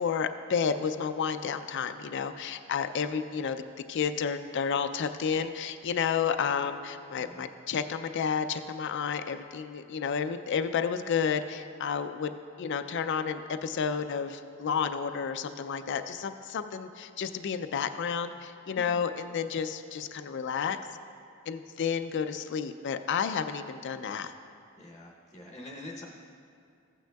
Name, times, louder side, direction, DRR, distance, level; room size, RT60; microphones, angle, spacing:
voice 1, 0.0-3.6 3.9-20.8 21.5-24.3, left 6 dB, 55° left, 9 dB, 0.4 m, -31 dB
voice 2, 7.2-7.5 18.7-19.0 24.8-26.1, left 1 dB, 15° left, -1 dB, 0.8 m, -45 dB
15.0 x 8.9 x 2.3 m, 2.5 s
head